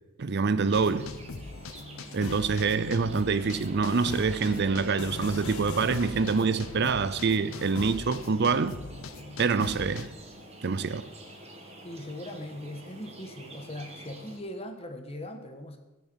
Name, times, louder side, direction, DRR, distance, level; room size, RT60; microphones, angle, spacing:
voice 1, 0.2-1.1 2.1-8.8 9.4-10.1 10.6-11.1, right 4 dB, 50° right, 0.5 m, -26 dB
sound 1, 0.6-14.4, right 1 dB, 30° right, 1.9 m, -48 dB
sound 2, 0.7-10.1, left 3 dB, 80° left, 0.9 m, -40 dB
voice 2, 11.8-15.8, left 1 dB, 30° left, 1.5 m, -40 dB
20.0 x 6.9 x 6.4 m
head